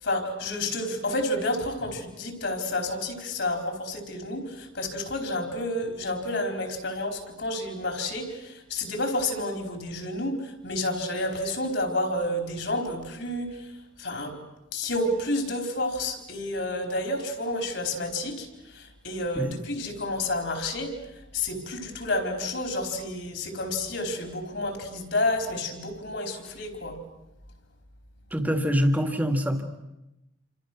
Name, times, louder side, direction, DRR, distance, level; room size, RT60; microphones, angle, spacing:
voice 1, 0.0-13.7 14.0-14.4 14.7-21.0 21.3-27.0, left 1 dB, 60° left, 4 dB, 4.3 m, -30 dB
voice 2, 28.3-29.6, equal, 10° right, 6 dB, 2.0 m, -24 dB
28.5 x 26.5 x 6.2 m, 0.94 s
head